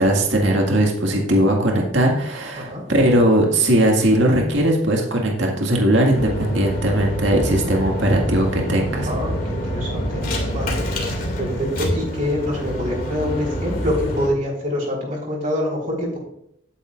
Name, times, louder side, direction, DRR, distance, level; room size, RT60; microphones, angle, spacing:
voice 1, 0.0-9.1, right 1 dB, 75° right, 0 dB, 1.9 m, -19 dB
sound 1, 6.1-14.3, equal, 45° left, 2.3 m, -26 dB
voice 2, 9.0-10.3 10.5-10.8 11.4-16.2, left 1 dB, 45° right, -2 dB, 4.4 m, -25 dB
11.5 x 9.6 x 2.5 m, 0.74 s
head